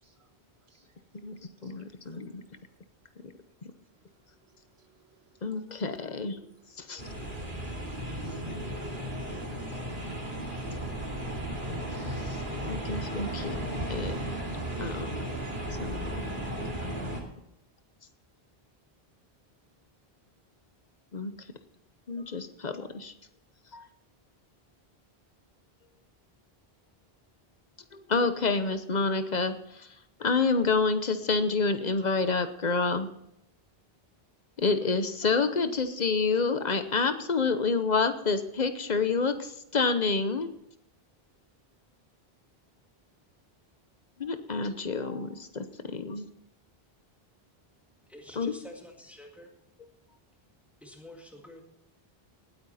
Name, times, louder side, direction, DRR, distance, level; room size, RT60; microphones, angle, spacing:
voice 1, 1.1-2.4 5.4-6.4 6.9-7.0 12.1-12.4 12.6-13.6 13.9-14.1 14.8-15.3 16.1-16.2 16.8-17.1 21.1-21.3 22.1-23.1 23.7-23.9 27.9-29.9 30.2-33.1 34.6-40.5 44.2-46.3 48.4-48.5, left 4 dB, 45° left, 10 dB, 1.0 m, -28 dB
sound 1, 7.0-17.2, right 1 dB, 55° right, 2.7 m, -35 dB
voice 2, 7.6-8.5 8.8-9.8 10.2-10.4, right 3 dB, 90° right, 4 dB, 2.0 m, -62 dB
voice 3, 48.1-49.5 50.8-51.6, left 1 dB, ahead, 1 dB, 1.9 m, -48 dB
18.5 x 8.7 x 4.2 m, 0.81 s
omnidirectional pair, 1.0 m